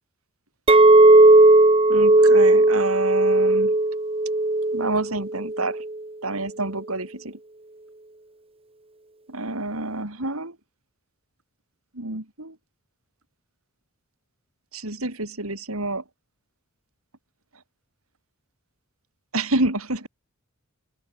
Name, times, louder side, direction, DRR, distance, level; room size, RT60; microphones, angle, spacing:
Chink clink, 0.7-5.9, right 2 dB, 25° right, 1.4 m, -16 dB
voice 1, 1.9-3.7 4.7-5.8 6.2-7.4 9.3-10.6 11.9-12.5 14.7-16.0 19.3-20.1, right 2 dB, 70° right, 4.7 m, -28 dB
head